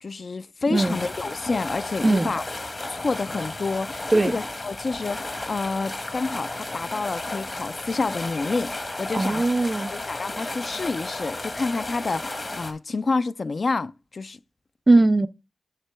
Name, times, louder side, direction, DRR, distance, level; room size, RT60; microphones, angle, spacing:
voice 1, 0.0-2.4 2.9-9.5 9.9-14.4, left 3 dB, 60° left, 0.3 m, -29 dB
sound 1, 0.7-12.7, left 2 dB, 45° left, 1.2 m, -33 dB
voice 2, 9.1-9.9 14.9-15.3, right 2 dB, 30° right, 0.4 m, -19 dB
7.4 x 6.8 x 3.3 m
wide cardioid pair, 85°, 0 cm